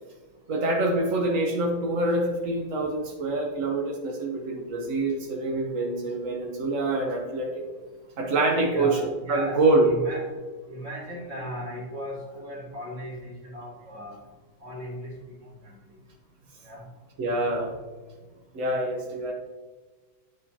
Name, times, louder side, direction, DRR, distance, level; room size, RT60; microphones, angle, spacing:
voice 1, 0.5-7.6 8.2-9.9 17.2-17.7 18.5-19.3, right 2 dB, 65° right, 0 dB, 0.8 m, -26 dB
voice 2, 8.5-10.3 10.7-14.2 14.6-15.1 16.6-16.8 17.3-17.4, equal, 30° right, -3 dB, 2.0 m, -36 dB
9.3 x 5.3 x 2.7 m, 1.4 s
omnidirectional pair, 2.4 m